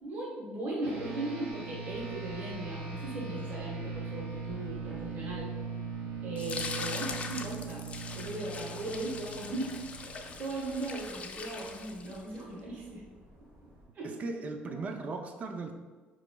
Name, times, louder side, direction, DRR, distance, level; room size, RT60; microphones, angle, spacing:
voice 1, 0.0-5.5 6.2-7.8 8.1-13.0 13.9-14.1 14.6-14.7, right 2 dB, 55° right, -4 dB, 1.1 m, -38 dB
sound 1, 0.8-10.5, right 4 dB, 90° right, 0.8 m, -40 dB
sound 2, 1.9-13.9, equal, 75° right, 1.2 m, -56 dB
sound 3, 6.4-12.4, left 4 dB, 35° left, 0.4 m, -41 dB
voice 2, 14.0-15.7, right 3 dB, 40° right, 5 dB, 0.4 m, -37 dB
4.4 x 3.0 x 2.2 m, 1.4 s
cardioid pair, 110°, 4 cm